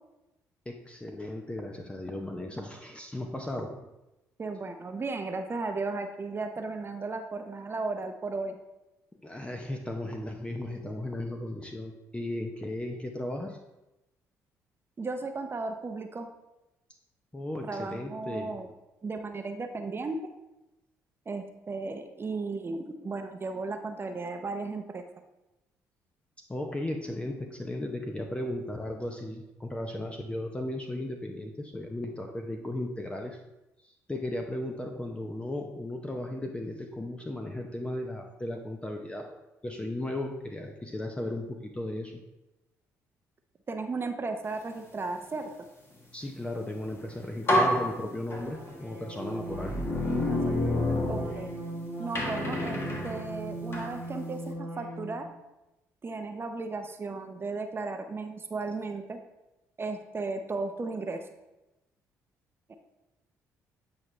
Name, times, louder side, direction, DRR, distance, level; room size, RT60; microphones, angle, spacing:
voice 1, 0.7-3.9 9.2-13.6 17.3-18.6 26.4-33.4 33.8-39.4 39.6-42.2 46.1-49.8, left 1 dB, 15° left, 3 dB, 0.7 m, -36 dB
voice 2, 4.4-8.6 15.0-16.3 17.6-18.7 19.0-20.2 21.3-25.0 43.7-45.7 50.3-51.5 52.0-55.2 56.0-59.2 59.8-61.2 62.7-62.8, right 3 dB, 35° right, 6 dB, 0.7 m, -35 dB
sound 1, 46.9-47.0 47.5-48.8 49.4-51.7 52.1-54.0, left 1 dB, 35° left, 1.6 m, -29 dB
sound 2, 48.4-55.3, right 2 dB, 85° left, 2.3 m, -39 dB
8.4 x 4.7 x 3.2 m, 0.97 s
supercardioid pair, 60°, 7 cm